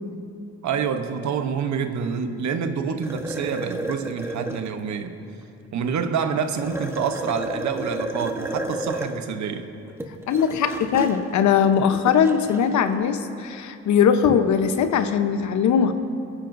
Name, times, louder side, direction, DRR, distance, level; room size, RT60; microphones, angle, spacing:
voice 1, 0.6-5.2 5.7-9.7, right 6 dB, 70° right, 8 dB, 1.0 m, -27 dB
sound 1, 3.0-4.7 6.6-9.2 9.8-12.7, right 1 dB, 10° right, 1.1 m, -31 dB
voice 2, 10.3-15.9, left 7 dB, 70° left, 8 dB, 0.9 m, -20 dB
27.5 x 9.9 x 2.7 m, 2.6 s
cardioid pair, 90°, 30 cm